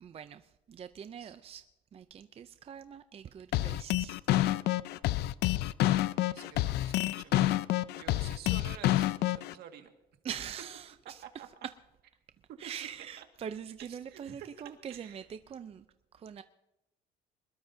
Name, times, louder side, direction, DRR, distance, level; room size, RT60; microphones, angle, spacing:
voice 1, 0.0-1.6 1.9-4.2 10.2-11.2 12.6-15.8 16.1-16.4, right 8 dB, 35° right, 11 dB, 0.5 m, -43 dB
sound 1, 3.5-9.5, left 15 dB, 75° left, 0.5 m, -28 dB
voice 2, 6.3-7.4 7.9-9.9 12.5-12.9 13.2-13.3 13.8-14.5 14.9-15.2, right 9 dB, 70° right, 5 dB, 1.9 m, -50 dB
23.5 x 20.5 x 2.7 m, 0.92 s
cardioid pair, 110°, 17 cm